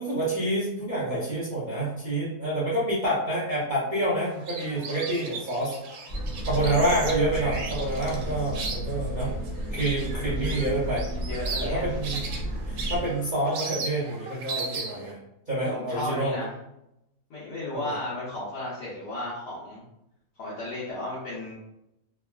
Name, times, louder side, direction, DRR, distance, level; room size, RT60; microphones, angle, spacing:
voice 1, 0.0-5.7 6.5-9.3 9.7-11.0 11.6-12.2 12.7-15.2 15.5-16.4 17.7-18.0, right 1 dB, 55° right, -9 dB, 0.5 m, -27 dB
sound 1, 4.2-15.1, right 4 dB, 85° right, 1.1 m, -37 dB
sound 2, 6.1-13.0, right 1 dB, 40° left, 0.7 m, -33 dB
voice 2, 6.6-7.0 9.7-10.6 11.1-12.0 15.6-16.5 17.3-19.8 20.4-21.5, left 1 dB, 90° left, -9 dB, 1.5 m, -35 dB
3.4 x 2.2 x 2.3 m, 0.86 s
omnidirectional pair, 1.7 m